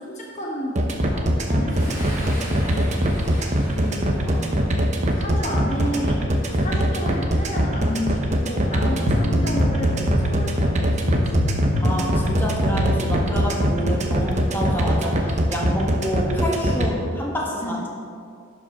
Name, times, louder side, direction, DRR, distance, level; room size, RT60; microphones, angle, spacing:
voice 1, 0.0-3.1 5.1-11.5 14.5-14.6 17.6-17.8, equal, 35° left, -2 dB, 1.1 m, -32 dB
sound 1, 0.8-16.9, equal, 35° right, 0.8 m, -21 dB
Boom, 1.7-5.3, equal, 15° right, 2.5 m, -35 dB
voice 2, 3.7-4.5 8.8-9.0 11.8-17.9, equal, 10° left, -3 dB, 1.3 m, -28 dB
sound 2, 9.1-14.4, left 1 dB, 85° left, 0.9 m, -27 dB
11.5 x 5.4 x 4.9 m, 2.3 s
head